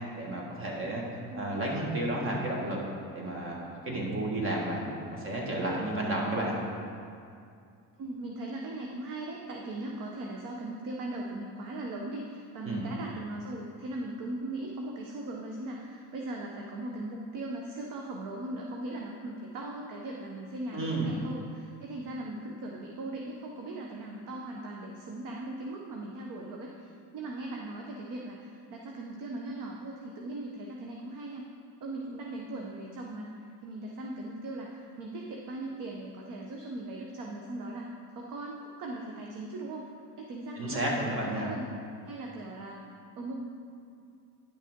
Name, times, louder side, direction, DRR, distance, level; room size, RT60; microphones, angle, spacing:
voice 1, 0.2-1.0 1.3-2.8 3.1-6.5 12.6-12.8 20.7-21.1 40.5-41.5, right 1 dB, 30° right, -2 dB, 1.6 m, -32 dB
voice 2, 1.3-1.6 8.0-31.4 31.8-37.9 38.1-39.8 40.2-41.6 42.0-42.8 43.2-43.4, right 2 dB, 50° right, 0 dB, 0.8 m, -39 dB
10.5 x 5.6 x 3.6 m, 2.4 s
cardioid pair, 130°, 40 cm